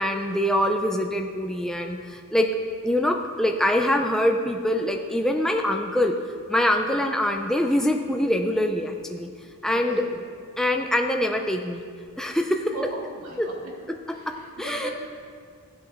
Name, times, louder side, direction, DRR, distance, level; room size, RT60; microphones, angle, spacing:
voice 1, 0.0-2.5 2.8-6.1 6.5-9.3 9.6-10.0 10.6-11.8 12.2-12.9 13.4-13.5 13.9-14.9, left 1 dB, ahead, 3 dB, 0.5 m, -24 dB
voice 2, 9.7-10.1 12.7-13.6 14.1-14.9, right 1 dB, 75° right, -2 dB, 2.2 m, -38 dB
16.0 x 7.7 x 3.6 m, 2.1 s
head